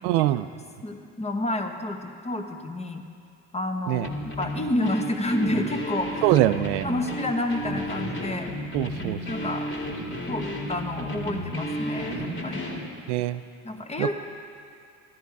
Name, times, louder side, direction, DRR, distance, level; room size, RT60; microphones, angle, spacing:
voice 1, 0.0-0.5 3.9-4.1 6.2-6.9 8.7-9.2 13.1-13.4 14.0-14.1, right 15 dB, 85° right, 12 dB, 0.5 m, -23 dB
voice 2, 0.8-3.0 3.5-4.1 4.4-6.4 6.8-8.5 9.3-9.7 10.3-12.7 13.6-14.1, left 1 dB, 20° left, 4 dB, 1.2 m, -29 dB
sound 1, 4.0-12.9, equal, 35° left, 2.1 m, -33 dB
14.0 x 10.5 x 4.7 m, 2.3 s
supercardioid pair, 90°, 34 cm